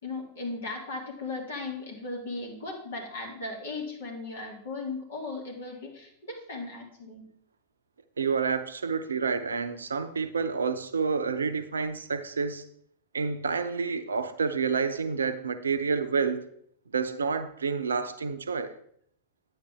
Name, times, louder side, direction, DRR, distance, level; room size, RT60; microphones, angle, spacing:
voice 1, 0.0-7.3, left 3 dB, 65° left, 2.9 m, -37 dB
voice 2, 8.2-12.6 13.1-16.5 16.9-18.8, right 5 dB, 70° right, 0.6 m, -29 dB
10.0 x 8.0 x 3.6 m
figure-of-eight pair, 90°, 0 cm